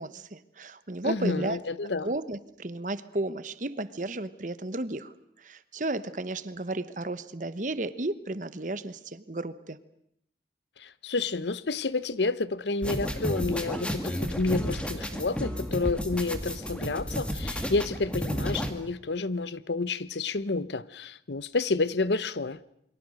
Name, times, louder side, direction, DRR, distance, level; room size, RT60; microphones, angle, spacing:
voice 1, 0.0-1.6 2.0-9.8, right 2 dB, 45° right, 1.1 m, -33 dB
voice 2, 1.0-2.1 10.8-22.6, left 3 dB, 80° left, 0.9 m, -30 dB
sound 1, 12.8-18.7, equal, 5° left, 2.1 m, -32 dB
28.5 x 23.5 x 6.5 m
head